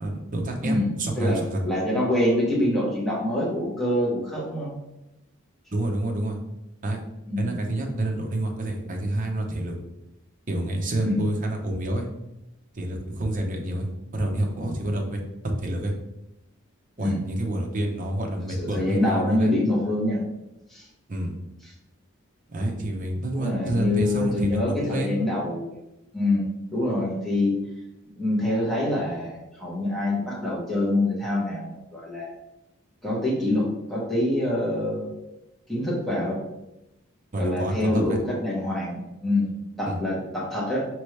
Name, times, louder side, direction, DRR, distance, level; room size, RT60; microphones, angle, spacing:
voice 1, 0.0-1.6 5.7-6.4 6.8-7.0 7.4-9.7 10.5-12.1 12.7-15.2 15.4-15.9 17.0-19.5 21.1-21.3 22.5-25.2 37.3-38.2 39.9-40.0, right 1 dB, 40° right, 1 dB, 0.8 m, -28 dB
voice 2, 1.2-4.7 7.3-7.6 11.0-11.2 17.0-17.2 18.6-20.2 20.7-20.9 23.3-25.7 26.1-27.5 28.2-32.3 33.0-35.1 35.7-36.4 37.4-39.5 39.8-40.9, left 1 dB, ahead, -6 dB, 1.2 m, -25 dB
5.2 x 3.1 x 3.2 m, 0.93 s
head